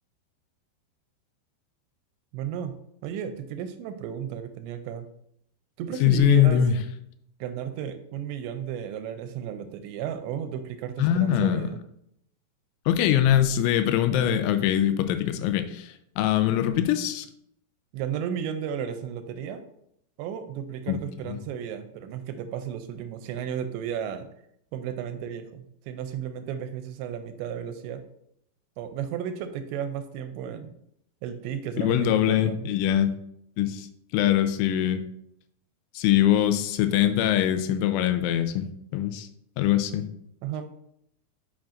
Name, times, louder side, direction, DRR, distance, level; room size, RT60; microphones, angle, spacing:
voice 1, 2.3-2.8 3.0-5.1 5.8-6.6 7.4-11.8 17.9-19.6 20.2-24.3 24.7-28.0 28.8-30.7 31.2-32.7 40.4-40.7, right 8 dB, 85° right, 9 dB, 2.7 m, -34 dB
voice 2, 6.0-6.8 11.0-11.7 12.9-17.3 20.9-21.0 21.3-21.4 31.8-33.1 33.6-33.9 34.1-35.0 36.0-38.6 38.9-39.3 39.6-40.0, left 11 dB, 90° left, 9 dB, 3.0 m, -22 dB
8.7 x 5.8 x 2.5 m, 0.75 s
omnidirectional pair, 5.3 m